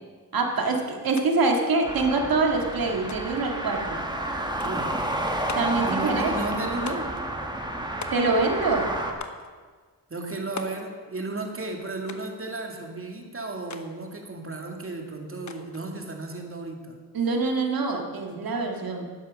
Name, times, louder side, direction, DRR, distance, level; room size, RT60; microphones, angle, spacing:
voice 1, 0.3-4.1 5.6-6.3 8.1-8.9 17.1-19.1, right 3 dB, 75° right, 2 dB, 2.1 m, -25 dB
sound 1, 1.2-1.3 1.6-2.3 3.1-3.5 4.6-4.9 5.5-5.9 6.9-7.3 8.0-8.6 9.2-9.5 10.6-10.9 12.1-12.4 13.7-13.9 15.5-15.9, left 5 dB, 50° left, 1.1 m, -40 dB
sound 2, 1.9-9.1, right 1 dB, 10° right, 1.8 m, -30 dB
voice 2, 4.6-4.9 5.9-7.1 10.1-17.0, right 2 dB, 35° right, 2 dB, 2.4 m, -34 dB
12.0 x 9.6 x 6.6 m, 1.5 s
cardioid pair, 70°, 36 cm